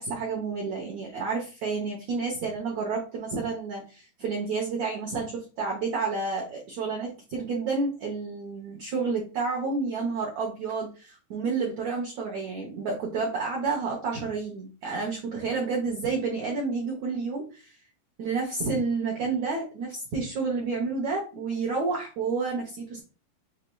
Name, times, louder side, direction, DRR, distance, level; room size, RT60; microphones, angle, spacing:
voice 1, 0.0-17.7 18.2-23.0, right 4 dB, 80° right, -2 dB, 1.5 m, -30 dB
6.5 x 3.3 x 2.2 m, 0.35 s
omnidirectional pair, 4.5 m